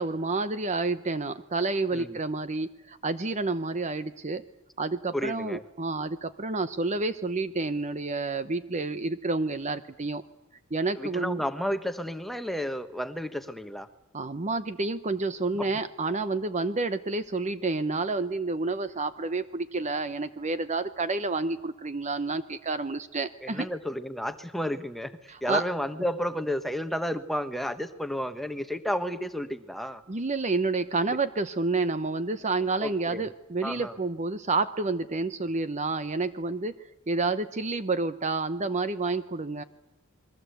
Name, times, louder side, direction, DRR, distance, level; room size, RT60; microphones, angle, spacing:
voice 1, 0.0-4.4 4.8-10.2 10.7-11.4 14.1-23.7 25.3-25.6 30.1-36.7 37.1-39.6, right 3 dB, 30° right, 12 dB, 0.9 m, -29 dB
voice 2, 5.1-5.6 11.0-13.9 15.5-15.7 23.4-25.1 25.4-30.0 32.8-33.2 33.6-34.0, equal, ahead, 9 dB, 1.3 m, -32 dB
28.5 x 22.0 x 8.1 m, 0.91 s
head